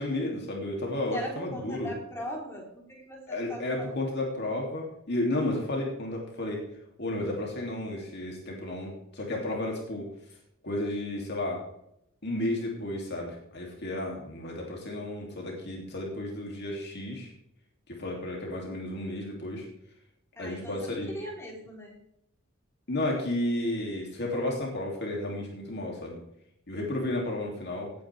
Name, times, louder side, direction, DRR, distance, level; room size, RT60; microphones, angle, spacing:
voice 1, 0.0-1.9 3.3-6.6 7.0-10.1 10.6-11.6 12.2-17.3 17.9-19.7 20.4-21.1 22.9-26.2 26.7-27.9, left 1 dB, 55° left, -1 dB, 2.9 m, -32 dB
voice 2, 1.1-4.0 20.4-22.0, equal, 15° left, -2 dB, 3.8 m, -40 dB
17.5 x 9.2 x 3.5 m, 0.77 s
head